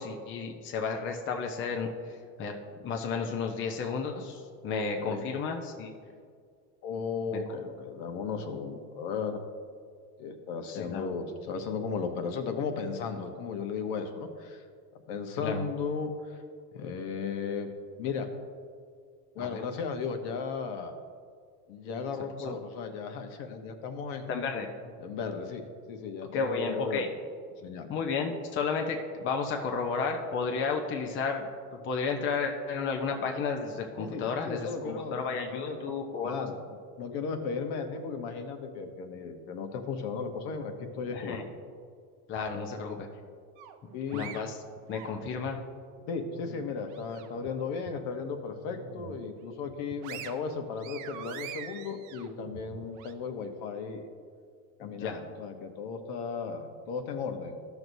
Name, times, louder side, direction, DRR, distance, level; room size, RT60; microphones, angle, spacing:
voice 1, 0.0-1.9 2.4-2.5 2.8-5.9 10.7-11.1 15.3-15.6 19.4-19.6 22.4-22.5 24.3-24.7 26.3-27.1 27.9-31.5 31.8-36.4 41.1-41.4 42.3-43.1 44.1-44.6 44.9-45.6 54.8-55.2, left 5 dB, 25° left, 2 dB, 0.7 m, -32 dB
voice 2, 4.7-5.3 6.8-9.4 10.2-14.6 15.1-16.4 16.7-17.7 18.0-18.3 19.3-20.9 21.7-24.3 25.0-25.6 25.9-27.2 27.6-27.9 34.0-35.8 36.2-36.6 37.0-41.4 43.9-44.3 46.1-54.1 54.8-57.7, left 5 dB, 55° left, 6 dB, 1.0 m, -35 dB
sound 1, 43.6-45.6 46.0-47.5 47.9-48.0 48.5-49.3 49.7-53.1, right 10 dB, 40° right, 0.6 m, -45 dB
14.0 x 6.2 x 2.7 m, 2.1 s
supercardioid pair, 125°, 46 cm